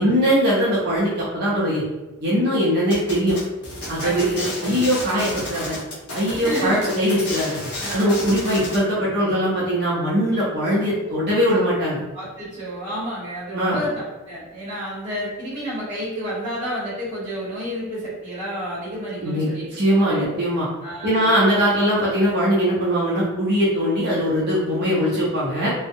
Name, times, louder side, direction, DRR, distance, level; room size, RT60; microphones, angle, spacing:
voice 1, 0.0-1.8 2.2-3.4 3.9-5.8 6.1-7.6 7.9-12.0 13.5-13.8 19.2-19.5 19.8-20.7 21.0-25.7, equal, 45° right, -7 dB, 0.5 m, -21 dB
sound 1, 2.9-8.8, left 1 dB, 50° left, 0.9 m, -32 dB
voice 2, 4.0-4.6 6.3-6.8 7.8-8.2 12.1-19.7 20.0-20.3 20.8-21.3, equal, 25° right, -9 dB, 0.9 m, -30 dB
2.6 x 2.0 x 2.5 m, 1.1 s
head